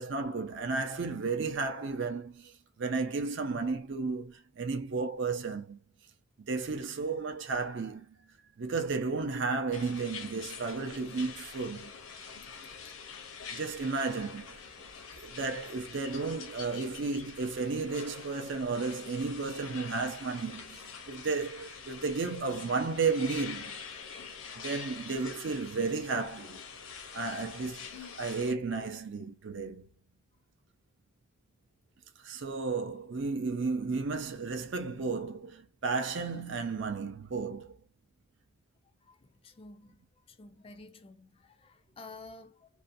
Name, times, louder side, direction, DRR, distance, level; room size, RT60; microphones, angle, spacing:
voice 1, 0.0-2.5 2.8-5.8 6.5-8.2 8.6-11.9 13.5-14.6 15.2-23.8 24.6-26.6 27.1-29.9 32.2-37.8, right 4 dB, 55° right, 0.5 m, -33 dB
sound 1, 9.7-28.5, left 6 dB, 70° left, 0.6 m, -45 dB
voice 2, 39.1-40.0 40.3-42.7, left 3 dB, 25° left, 0.3 m, -51 dB
2.5 x 2.1 x 2.5 m
head